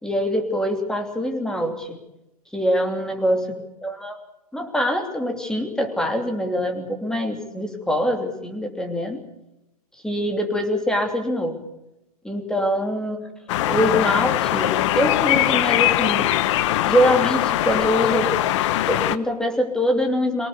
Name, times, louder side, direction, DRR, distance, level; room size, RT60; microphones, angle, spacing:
voice 1, 0.0-2.0 2.5-3.4 3.8-4.2 4.5-9.2 10.0-11.7 12.2-13.2 13.6-16.4 16.8-18.3 18.9-20.5, equal, 5° left, 4 dB, 3.1 m, -24 dB
sound 1, 13.5-19.2, left 14 dB, 50° left, 1.1 m, -21 dB
24.0 x 18.5 x 6.8 m, 0.90 s
hypercardioid pair, 115°, 20 cm